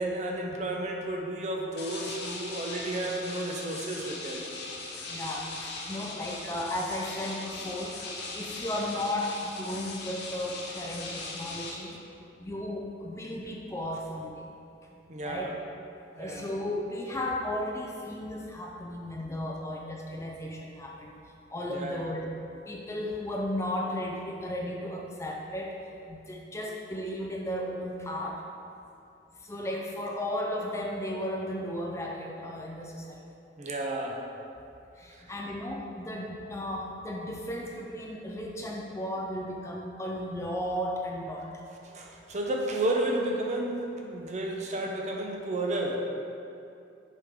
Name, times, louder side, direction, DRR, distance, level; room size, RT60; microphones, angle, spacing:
voice 1, 0.0-4.4 15.1-15.5 16.1-16.5 21.7-22.1 33.6-34.3 35.1-35.3 41.8-46.0, right 1 dB, 40° right, 0 dB, 0.7 m, -32 dB
sound 1, 1.8-11.7, left 3 dB, 60° left, 0.8 m, -40 dB
voice 2, 5.1-12.0 12.4-14.5 14.9-15.5 16.2-21.2 21.5-22.3 22.7-25.8 26.1-28.4 29.4-33.2 35.0-41.6 42.2-42.3, left 1 dB, 15° left, -1 dB, 0.4 m, -35 dB
6.6 x 5.0 x 3.6 m, 2.6 s
head